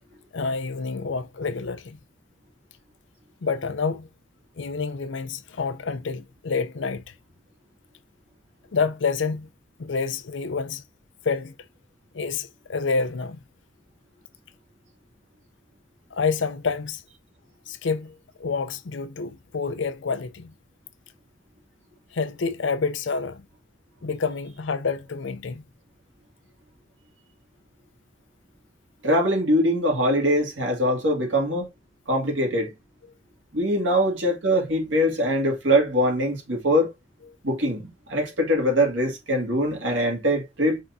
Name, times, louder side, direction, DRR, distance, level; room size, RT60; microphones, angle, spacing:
voice 1, 0.3-2.0 3.4-4.1 4.6-7.0 8.7-9.5 9.8-10.8 11.3-11.5 12.1-13.4 16.1-17.0 17.7-20.5 22.1-23.4 24.0-25.6 33.9-34.0, left 4 dB, 65° left, 0.5 m, -28 dB
voice 2, 29.0-31.7 32.1-32.7 33.5-36.9 37.4-40.8, equal, 70° right, 2.1 m, -22 dB
5.4 x 3.5 x 2.6 m
head